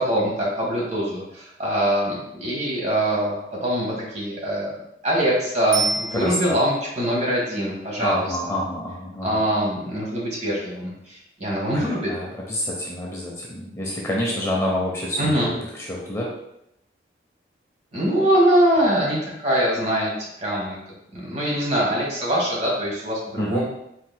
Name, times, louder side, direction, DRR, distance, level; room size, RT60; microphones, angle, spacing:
voice 1, 0.0-4.7 5.0-8.4 9.2-12.1 15.2-15.5 17.9-20.8 21.1-23.7, right 1 dB, 40° right, -4 dB, 1.5 m, -23 dB
Bicycle bell, 5.7-6.8 15.9-16.0, right 3 dB, 70° right, 1.0 m, -27 dB
voice 2, 6.1-6.6 8.0-9.4 11.7-15.5 15.8-16.3 23.4-23.6, equal, 15° left, -3 dB, 0.5 m, -27 dB
4.5 x 4.2 x 2.2 m, 0.82 s
head